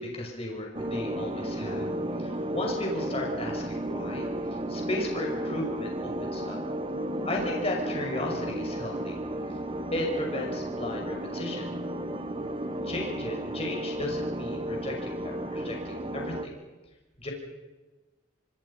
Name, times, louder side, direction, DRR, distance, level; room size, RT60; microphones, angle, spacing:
voice 1, 0.0-1.9 2.2-6.6 7.2-9.2 9.9-11.7 12.8-16.5 17.2-17.3, left 1 dB, 30° left, 0 dB, 5.8 m, -35 dB
sound 1, 0.7-16.5, right 1 dB, 30° right, 1.5 m, -33 dB
26.5 x 25.5 x 5.6 m, 1.2 s
head